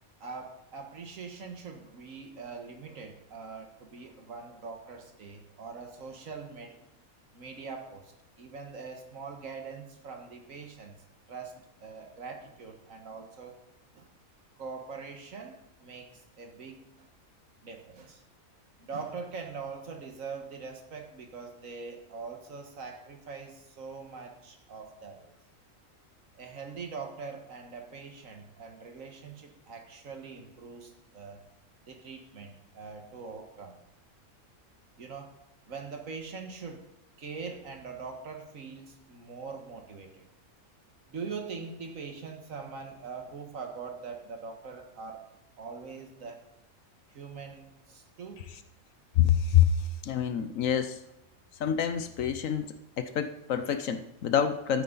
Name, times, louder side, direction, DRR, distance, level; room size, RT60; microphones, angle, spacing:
voice 1, 0.2-6.8 7.3-11.0 11.3-13.6 13.9-14.1 14.6-17.1 17.6-18.2 18.8-25.3 26.4-31.4 31.9-33.8 35.0-35.4 35.7-36.8 37.2-40.3 41.1-45.2 45.6-46.4 47.1-48.5, right 5 dB, 65° right, 4 dB, 1.8 m, -42 dB
voice 2, 49.1-51.0 51.6-54.8, left 9 dB, 70° left, 10 dB, 1.1 m, -27 dB
12.5 x 9.8 x 3.9 m, 0.84 s
omnidirectional pair, 1.5 m